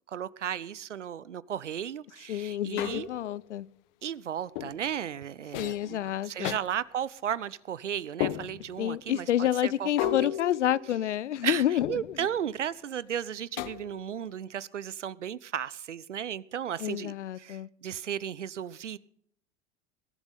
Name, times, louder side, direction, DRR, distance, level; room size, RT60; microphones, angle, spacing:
voice 1, 0.1-3.1 4.0-10.3 11.4-19.0, right 9 dB, 80° right, 0.8 m, -35 dB
voice 2, 2.3-3.7 5.6-6.6 8.8-12.2 16.8-17.7, left 11 dB, 70° left, 0.7 m, -29 dB
sound 1, 2.8-3.4 4.5-4.9 5.5-5.9 6.4-6.6 8.2-8.8 10.0-11.3 11.8-12.3 13.6-14.2, left 14 dB, 50° left, 1.1 m, -34 dB
21.0 x 11.5 x 4.1 m
figure-of-eight pair, 85°, 36 cm